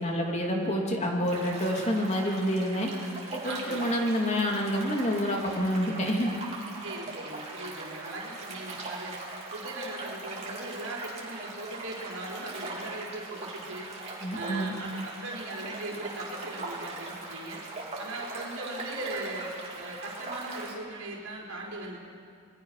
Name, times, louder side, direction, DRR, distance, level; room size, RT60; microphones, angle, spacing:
voice 1, 0.0-2.9 3.3-6.3 14.2-14.7, equal, 30° left, 0 dB, 2.8 m, -28 dB
sound 1, 1.2-20.7, right 2 dB, 30° right, 3.8 m, -40 dB
voice 2, 3.4-3.9 6.8-9.1 9.5-13.9 14.3-17.6 18.0-22.0, right 2 dB, 85° right, -2 dB, 4.1 m, -39 dB
27.0 x 21.0 x 5.8 m, 2.3 s
head